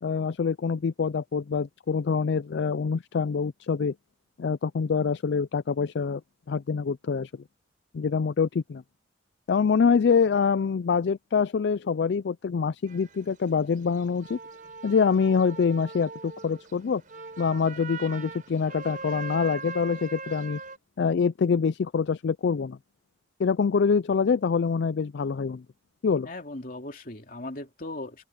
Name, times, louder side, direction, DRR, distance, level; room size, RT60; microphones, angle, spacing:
voice 1, 0.0-3.9 4.4-6.2 6.5-7.3 7.9-8.8 9.5-14.4 14.8-17.0 17.4-20.6 21.0-22.8 23.4-25.6 26.0-26.3, left 5 dB, 70° left, 0.4 m, -25 dB
sound 1, 12.9-20.8, right 4 dB, 45° right, 4.8 m, -41 dB
voice 2, 26.2-28.3, left 2 dB, 50° left, 2.8 m, -38 dB
open air
head